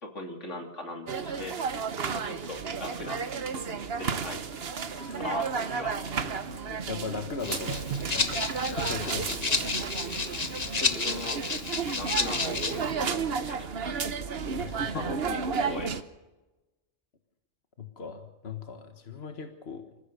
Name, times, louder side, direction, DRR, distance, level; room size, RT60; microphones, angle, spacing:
voice 1, 0.0-1.6 2.1-3.3 3.7-4.4 5.2-6.1 10.5-11.4 11.9-13.7 14.9-15.9, left 1 dB, 90° left, 3 dB, 3.3 m, -39 dB
sound 1, 1.1-16.0, right 6 dB, 60° right, 1.3 m, -33 dB
voice 2, 4.9-5.2 6.2-9.7 10.4-10.6 14.5-15.2 17.8-19.8, left 5 dB, 60° left, 7 dB, 1.7 m, -39 dB
Rattle (instrument), 7.4-12.9, left 4 dB, 35° left, 1.3 m, -31 dB
27.0 x 15.0 x 6.8 m, 1.1 s
omnidirectional pair, 1.2 m